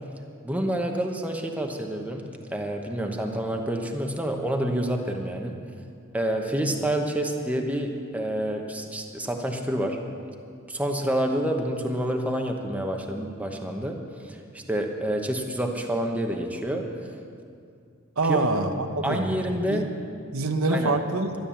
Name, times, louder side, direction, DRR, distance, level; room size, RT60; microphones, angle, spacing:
voice 1, 0.4-2.2 2.5-5.6 6.1-10.0 10.7-14.0 14.2-16.8 18.2-18.5 19.0-19.9 20.7-21.0, right 1 dB, 5° right, 2 dB, 1.0 m, -28 dB
voice 2, 18.2-19.3 19.6-19.8 20.3-21.3, right 2 dB, 80° right, 6 dB, 1.0 m, -25 dB
13.0 x 10.5 x 7.1 m, 2.3 s
head